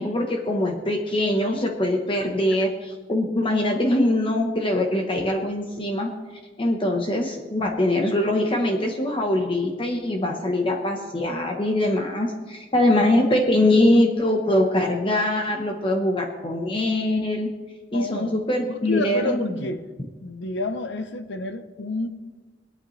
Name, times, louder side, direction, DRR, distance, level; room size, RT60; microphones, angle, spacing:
voice 1, 0.0-6.1 6.6-17.5 17.9-19.6, left 1 dB, 30° left, 2 dB, 1.0 m, -23 dB
voice 2, 17.9-18.4 18.7-19.8 20.2-22.1, left 2 dB, 75° left, 9 dB, 0.7 m, -29 dB
24.0 x 8.8 x 3.2 m, 1.4 s
head